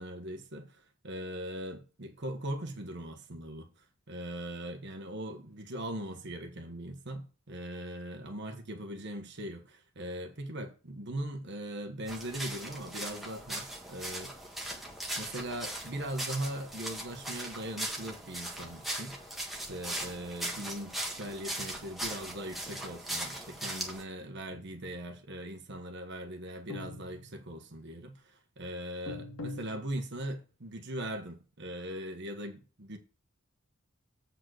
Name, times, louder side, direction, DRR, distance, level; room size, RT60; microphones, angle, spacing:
voice 1, 0.0-3.7 4.1-14.3 15.2-19.2 19.5-33.0, right 1 dB, 55° right, 1.2 m, -40 dB
sound 1, 12.1-24.0, right 1 dB, ahead, 1.5 m, -39 dB
sound 2, 24.5-25.1 26.7-27.7 29.1-30.4, left 2 dB, 90° left, 2.4 m, -44 dB
8.0 x 4.5 x 6.2 m
head